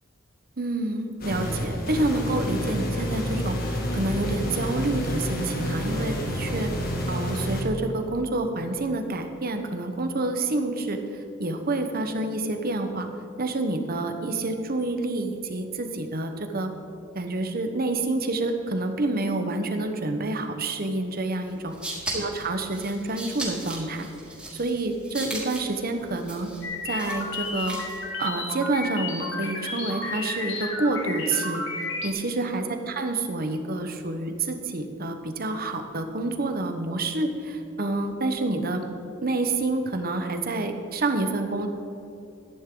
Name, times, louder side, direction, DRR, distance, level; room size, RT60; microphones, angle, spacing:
voice 1, 0.6-3.6 3.9-6.7 7.1-11.0 11.4-13.1 13.4-16.7 17.1-21.7 22.0-24.1 24.5-26.5 26.8-27.8 28.2-31.6 32.0-38.8 39.2-41.7, right 2 dB, 50° right, 6 dB, 1.1 m, -28 dB
sound 1, 1.2-7.6, equal, 50° left, 1.8 m, -29 dB
sound 2, 21.5-28.1, right 1 dB, 5° right, 3.1 m, -37 dB
sound 3, 26.6-32.1, left 3 dB, 65° left, 1.8 m, -32 dB
13.5 x 10.5 x 3.8 m, 2.9 s
head